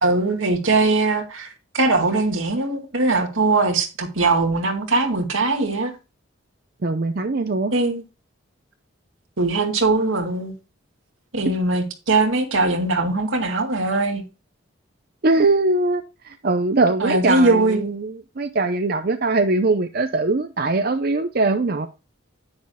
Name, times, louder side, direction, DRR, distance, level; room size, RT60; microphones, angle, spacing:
voice 1, 0.0-5.9 7.7-8.0 9.4-10.5 11.3-14.2 17.0-17.9, right 3 dB, 80° right, 2.2 m, -21 dB
voice 2, 6.8-7.7 11.5-11.6 15.2-21.9, right 3 dB, 50° right, 0.6 m, -21 dB
10.5 x 9.7 x 2.2 m
head